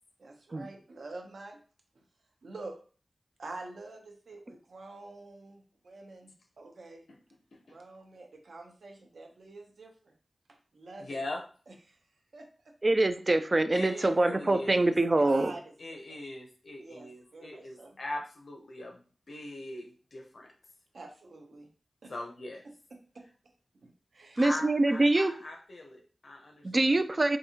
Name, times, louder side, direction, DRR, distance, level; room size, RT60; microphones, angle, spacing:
voice 1, 0.2-1.6 2.4-2.8 3.4-6.3 6.6-7.0 7.7-10.1 10.7-11.2 11.9-12.0 12.3-12.5 13.8-14.2 15.0-16.2 16.8-17.9 20.9-21.7 22.0-22.1 22.9-23.3 23.8-24.5, right 2 dB, 80° right, 2 dB, 0.8 m, -47 dB
voice 2, 11.0-11.4 13.7-14.9 15.8-19.0 19.3-20.5 22.1-22.6 24.4-27.0, left 2 dB, 70° left, 2 dB, 0.8 m, -41 dB
voice 3, 12.8-15.5 24.4-25.3 26.6-27.4, right 2 dB, 35° right, 9 dB, 0.3 m, -25 dB
4.7 x 2.6 x 2.8 m, 0.39 s
wide cardioid pair, 100°, 0 cm